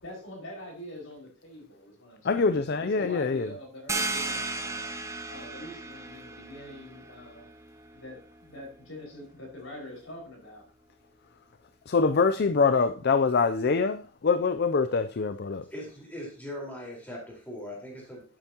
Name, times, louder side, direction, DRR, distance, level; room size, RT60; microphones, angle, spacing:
voice 1, 0.0-4.9 5.3-7.5 7.9-10.6, left 1 dB, 75° left, 5.6 m, -44 dB
voice 2, 2.2-3.5 11.9-15.6, left 4 dB, 55° left, 0.5 m, -24 dB
sound 1, 3.9-9.3, right 2 dB, 15° right, 0.9 m, -36 dB
voice 3, 15.7-18.4, left 1 dB, 10° left, 4.4 m, -40 dB
12.0 x 8.8 x 2.9 m
head